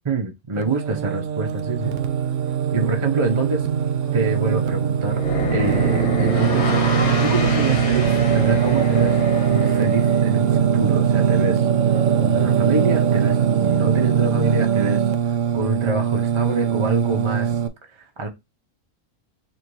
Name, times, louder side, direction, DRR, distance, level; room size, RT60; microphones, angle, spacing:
voice 1, 0.0-1.9 2.7-3.7 4.1-5.2 5.5-6.7 7.2-9.2 9.5-11.7 12.2-15.0 15.5-17.6 18.0-18.3, right 3 dB, 35° right, 0.4 m, -26 dB
Singing, 0.6-17.7, right 8 dB, 65° right, 0.8 m, -21 dB
sound 1, 5.1-10.2, left 1 dB, 80° left, 1.7 m, -27 dB
3.4 x 2.7 x 4.6 m
omnidirectional pair, 1.5 m